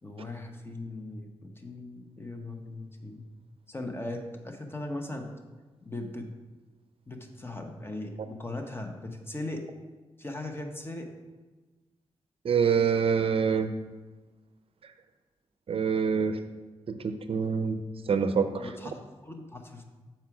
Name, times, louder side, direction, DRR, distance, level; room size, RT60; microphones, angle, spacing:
voice 1, 0.0-3.2 3.7-5.3 5.8-6.3 7.1-9.7 10.2-11.1 18.6-18.9 19.2-19.8, left 2 dB, 20° left, 4 dB, 0.9 m, -38 dB
voice 2, 12.4-13.7 15.7-16.4 16.9-17.8 18.1-18.7, right 6 dB, 60° right, 9 dB, 0.5 m, -26 dB
7.3 x 4.4 x 4.8 m, 1.3 s
cardioid pair, 80°, 11 cm